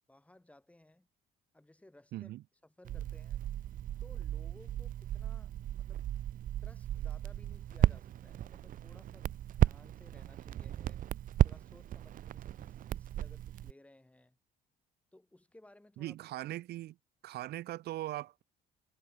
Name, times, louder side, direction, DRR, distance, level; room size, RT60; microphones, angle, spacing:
voice 1, 0.1-1.1 1.5-2.3 2.6-3.5 4.0-6.0 6.6-11.1 11.4-14.4 15.1-16.2, left 1 dB, 10° left, 6.0 m, -60 dB
voice 2, 2.1-2.4 16.0-17.0 17.2-18.4, right 15 dB, 75° right, 2.1 m, -40 dB
Crackle, 2.8-13.7, right 12 dB, 55° right, 0.7 m, -34 dB
cardioid pair, 110°, 17 cm